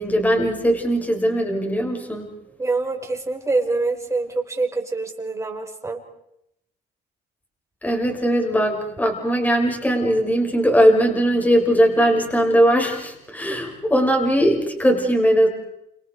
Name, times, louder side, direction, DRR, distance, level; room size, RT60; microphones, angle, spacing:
voice 1, 0.0-2.3 7.8-15.5, equal, 10° left, 3 dB, 6.2 m, -19 dB
voice 2, 2.6-6.0 13.5-13.6, right 3 dB, 15° right, 3 dB, 5.1 m, -25 dB
29.5 x 27.5 x 4.8 m, 0.79 s
cardioid pair, 110°, 17 cm